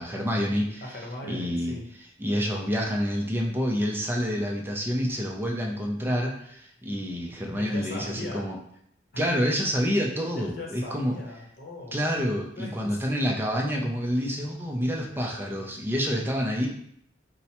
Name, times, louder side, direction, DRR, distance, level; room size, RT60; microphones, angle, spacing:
voice 1, 0.0-0.8 1.3-1.8 2.2-8.6 9.2-11.2 11.9-16.7, equal, 10° right, -1 dB, 0.4 m, -28 dB
voice 2, 0.8-1.9 7.5-8.5 9.1-9.4 10.4-12.1 12.5-13.2 16.0-16.2, left 1 dB, 55° left, -1 dB, 0.8 m, -39 dB
4.4 x 2.0 x 2.8 m, 0.69 s
head